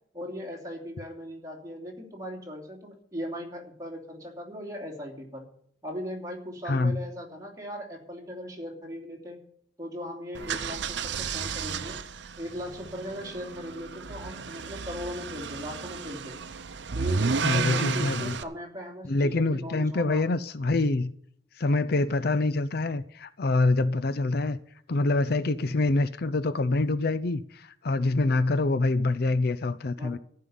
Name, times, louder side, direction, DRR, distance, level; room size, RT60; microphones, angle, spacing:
voice 1, 0.1-5.5 5.8-9.4 9.8-12.0 12.4-16.4 16.9-20.3 30.0-30.2, equal, 20° right, 2.9 m, -38 dB
voice 2, 6.7-7.0 17.4-18.4 19.0-21.1 21.6-24.6 24.9-30.2, left 2 dB, 55° left, 0.5 m, -25 dB
sound 1, 10.3-18.4, right 5 dB, 70° right, 0.7 m, -32 dB
13.5 x 5.6 x 9.4 m
head